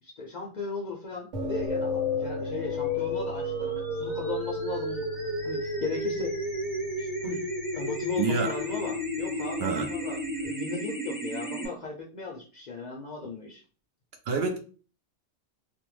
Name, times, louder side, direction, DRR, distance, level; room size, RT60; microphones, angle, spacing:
voice 1, 0.0-5.1 5.4-6.4 7.0-7.5 7.7-13.6, left 4 dB, 60° left, 0.5 m, -37 dB
sound 1, 1.3-10.4, left 2 dB, 85° right, 1.1 m, -40 dB
sound 2, 1.7-11.7, left 1 dB, 10° right, 0.7 m, -32 dB
voice 2, 8.2-8.5 9.6-9.9 14.3-14.6, right 5 dB, 65° right, 0.7 m, -27 dB
2.5 x 2.1 x 3.0 m
omnidirectional pair, 1.2 m